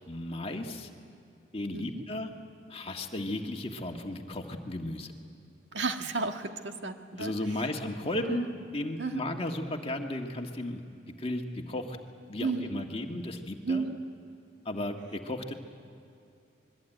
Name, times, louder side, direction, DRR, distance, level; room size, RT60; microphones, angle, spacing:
voice 1, 0.1-0.9 1.5-2.3 2.7-5.1 7.2-8.5 8.7-10.8 11.2-12.0 12.3-13.8 14.6-15.5, left 1 dB, 30° left, 3 dB, 1.6 m, -34 dB
voice 2, 1.7-2.1 5.7-7.6 8.1-8.6 9.0-9.3 12.4-12.8 13.6-14.0, right 4 dB, 75° right, 5 dB, 1.7 m, -34 dB
26.5 x 21.5 x 9.1 m, 2.6 s
head